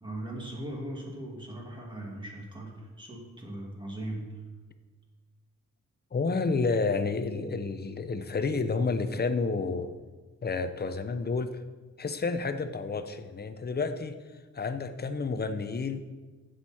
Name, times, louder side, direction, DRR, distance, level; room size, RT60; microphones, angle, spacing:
voice 1, 0.0-4.3, right 1 dB, 15° right, -2 dB, 2.4 m, -39 dB
voice 2, 6.1-9.9 10.4-11.6 12.0-14.2 14.5-16.0, left 4 dB, 35° left, 9 dB, 0.7 m, -30 dB
15.0 x 6.5 x 4.4 m, 1.3 s
wide cardioid pair, 150°, 30 cm